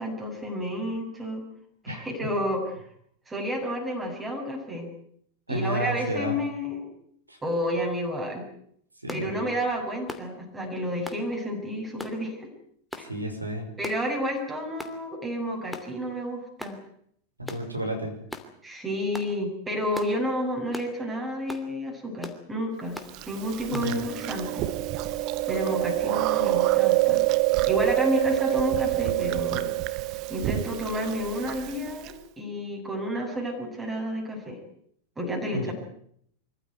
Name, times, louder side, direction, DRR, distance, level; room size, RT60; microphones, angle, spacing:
voice 1, 0.0-1.4 1.8-2.8 3.3-4.9 5.5-6.9 7.4-8.5 9.1-12.5 13.0-13.1 13.8-16.8 18.6-23.0 23.3-24.7 25.5-27.2 27.7-29.7 30.3-34.6 35.2-35.7, equal, 15° right, 1 dB, 7.5 m, -30 dB
voice 2, 1.9-2.3 5.5-6.4 7.3-7.4 9.0-9.5 13.0-13.7 17.4-18.1 23.7-24.0 35.5-35.7, right 1 dB, 85° right, 6 dB, 5.9 m, -31 dB
sound 1, 9.1-9.3 10.1-10.3 11.1-11.2 12.0-12.2 12.9-13.1 13.8-14.1 14.8-15.0 15.7-15.9 16.6-16.8 17.5-17.7 18.3-18.5 19.1-19.3 19.9-20.2 20.7-20.9 21.5-21.7 22.2-22.4 22.9-23.1 23.7-23.9, left 2 dB, 5° left, 2.9 m, -39 dB
Chewing mastication, 23.1-32.1, right 19 dB, 40° right, 1.3 m, -26 dB
25.5 x 15.0 x 9.5 m, 0.69 s
figure-of-eight pair, 90°, 0 cm